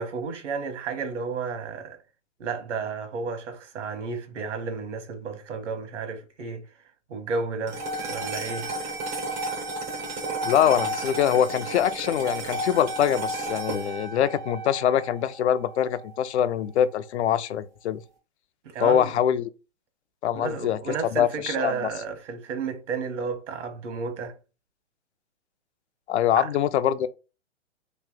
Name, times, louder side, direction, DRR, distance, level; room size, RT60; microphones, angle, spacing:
voice 1, 0.0-2.0 2.4-6.6 7.1-8.7 18.6-19.2 20.3-24.3 26.4-26.5, right 5 dB, 75° right, 1.1 m, -32 dB
sound 1, 7.7-16.2, right 2 dB, 15° right, 0.4 m, -32 dB
voice 2, 10.4-18.0 18.8-19.5 20.2-20.8 21.1-21.7 26.1-27.1, left 10 dB, 65° left, 0.5 m, -24 dB
3.1 x 2.7 x 3.6 m
hypercardioid pair, 145°, 36 cm